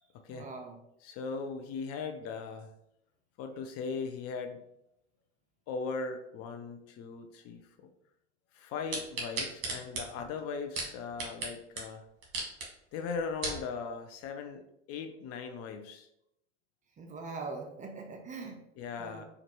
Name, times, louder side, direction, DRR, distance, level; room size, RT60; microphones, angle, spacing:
voice 1, 0.3-0.8 17.0-18.6 19.0-19.3, right 3 dB, 20° right, 3 dB, 0.5 m, -42 dB
voice 2, 1.0-2.7 3.4-4.6 5.7-7.9 8.5-12.0 12.9-14.6 14.9-16.1 18.8-19.3, left 5 dB, 40° left, 6 dB, 0.5 m, -38 dB
sound 1, 8.9-11.5 11.8-11.9 12.2-12.7 13.1-13.6 14.2-14.3, right 3 dB, 40° right, 1.5 m, -35 dB
4.3 x 2.5 x 3.0 m, 0.80 s
hypercardioid pair, 80°, 36 cm